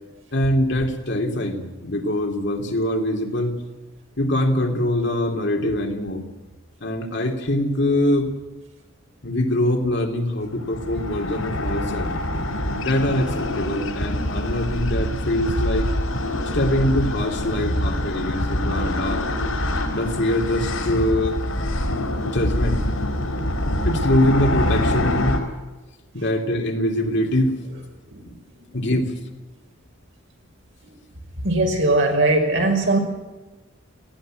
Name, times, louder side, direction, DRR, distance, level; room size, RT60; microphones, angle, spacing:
voice 1, 0.3-3.6 4.2-6.2 6.8-8.3 9.2-12.1 12.8-15.9 16.5-19.2 19.9-21.4 22.3-22.8 23.8-25.4 26.1-27.6 28.7-29.1, left 1 dB, 60° left, 3 dB, 3.1 m, -23 dB
sound 1, 10.5-25.4, left 1 dB, 90° left, 5.4 m, -25 dB
voice 2, 31.4-33.0, right 2 dB, 60° right, 2 dB, 5.6 m, -19 dB
19.0 x 16.5 x 9.0 m, 1.2 s
head